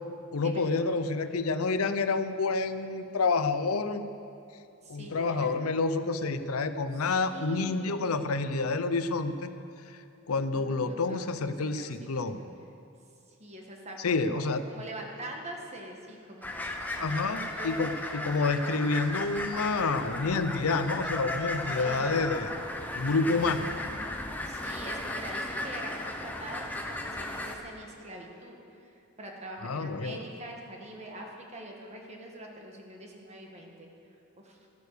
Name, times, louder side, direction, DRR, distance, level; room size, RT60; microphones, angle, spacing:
voice 1, 0.3-4.0 4.9-9.5 10.3-12.5 14.0-14.6 17.0-22.6 22.9-23.9 29.6-30.2, left 3 dB, 85° left, 11 dB, 0.6 m, -28 dB
voice 2, 4.8-5.5 7.3-8.2 10.5-11.9 12.3-12.5 13.4-17.1 17.6-17.7 21.8-22.3 24.4-33.9 34.4-34.6, right 1 dB, 30° right, 0 dB, 1.6 m, -44 dB
sound 1, 16.4-27.6, left 1 dB, 10° left, 0.9 m, -35 dB
13.5 x 9.4 x 6.7 m, 2.6 s
head